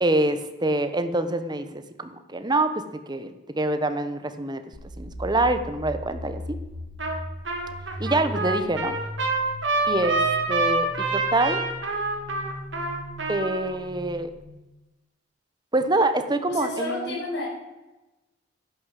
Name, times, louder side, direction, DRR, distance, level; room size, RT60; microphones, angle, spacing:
voice 1, 0.0-4.6 5.0-6.6 8.0-8.9 9.9-10.2 10.5-11.6 13.3-14.3 15.7-17.2, right 2 dB, 25° right, 9 dB, 1.2 m, -25 dB
sound 1, 4.7-14.5, equal, 40° right, 4.0 m, -38 dB
Trumpet, 7.0-7.2 7.5-13.7, right 2 dB, 80° right, 2.9 m, -26 dB
voice 2, 16.5-17.5, left 2 dB, 65° left, -2 dB, 6.4 m, -30 dB
11.5 x 10.5 x 7.6 m, 1.0 s
head